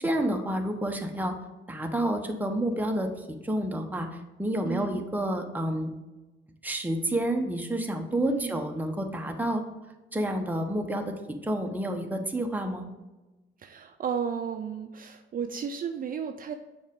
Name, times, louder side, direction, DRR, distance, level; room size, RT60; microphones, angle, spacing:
voice 1, 0.0-1.3 1.7-5.9 6.6-9.6 10.1-11.0 11.4-12.9, right 1 dB, 10° right, 3 dB, 0.9 m, -29 dB
voice 2, 4.6-5.0 8.2-8.6 13.6-16.5, right 7 dB, 45° right, 6 dB, 0.5 m, -33 dB
7.2 x 4.9 x 3.6 m, 1.1 s
cardioid pair, 90°, 20 cm